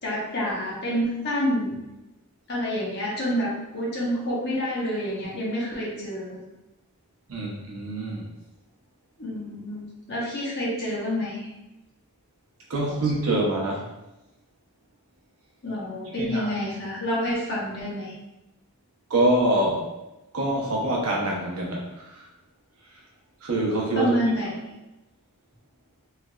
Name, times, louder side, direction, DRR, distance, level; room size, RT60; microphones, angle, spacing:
voice 1, 0.0-1.8 2.5-6.4 9.2-11.5 15.6-18.1 23.9-24.5, equal, 50° left, -6 dB, 1.2 m, -28 dB
voice 2, 7.3-8.3 12.7-13.9 16.2-16.5 19.1-19.9 20.3-22.3 23.4-24.1, right 1 dB, 85° right, -3 dB, 0.9 m, -25 dB
3.3 x 3.2 x 2.4 m, 0.96 s
head